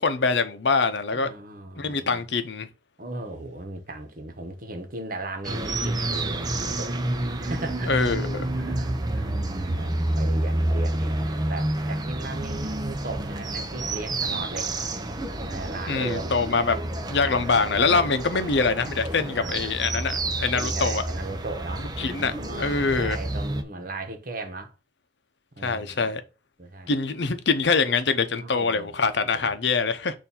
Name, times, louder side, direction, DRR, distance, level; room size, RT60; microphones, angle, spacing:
voice 1, 0.0-1.3 1.8-2.7 7.9-8.5 15.9-16.8 17.1-21.0 22.0-23.2 25.6-26.2 26.9-30.2, left 4 dB, 70° left, 0.7 m, -24 dB
voice 2, 1.1-2.2 3.0-7.1 7.4-8.0 8.5-14.7 15.4-16.3 19.4-19.7 20.5-24.7 25.6-26.1 26.6-27.0 28.4-29.0 29.2-29.5, right 2 dB, 50° right, 1.2 m, -37 dB
sound 1, 5.4-23.6, right 1 dB, 20° right, 0.7 m, -29 dB
6.9 x 2.7 x 5.5 m
head